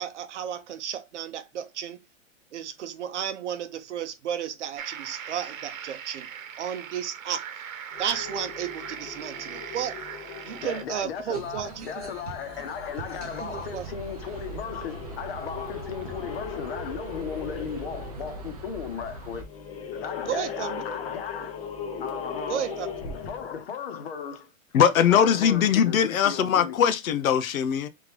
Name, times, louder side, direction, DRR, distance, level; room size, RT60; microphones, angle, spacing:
voice 1, 0.0-2.0 2.5-6.3 6.6-7.5 8.0-10.0 10.4-12.1 13.4-13.9 20.3-20.8 22.5-22.9, right 9 dB, 60° right, 0.7 m, -33 dB
sound 1, 4.8-10.8, right 8 dB, 85° right, 1.1 m, -39 dB
sound 2, 7.9-23.6, left 5 dB, 25° left, 0.7 m, -40 dB
voice 2, 10.5-19.5 19.9-21.6 22.0-22.7 23.1-24.5 25.0-26.8, left 7 dB, 50° left, 1.0 m, -36 dB
sound 3, 11.3-19.4, right 4 dB, 30° right, 0.4 m, -41 dB
voice 3, 24.7-27.9, left 8 dB, 90° left, 0.8 m, -21 dB
3.7 x 3.6 x 3.1 m
hypercardioid pair, 175°, 40 cm